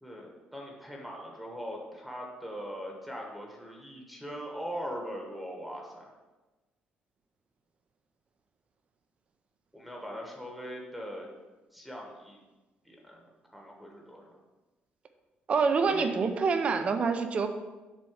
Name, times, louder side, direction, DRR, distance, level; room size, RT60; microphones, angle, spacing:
voice 1, 0.0-6.1 9.7-11.3 11.7-12.4 12.8-14.4 15.9-16.1, equal, ahead, 0 dB, 1.1 m, -41 dB
voice 2, 15.5-17.5, right 5 dB, 35° right, 8 dB, 0.6 m, -26 dB
7.5 x 4.1 x 6.4 m, 1.2 s
cardioid pair, 160°, 4 cm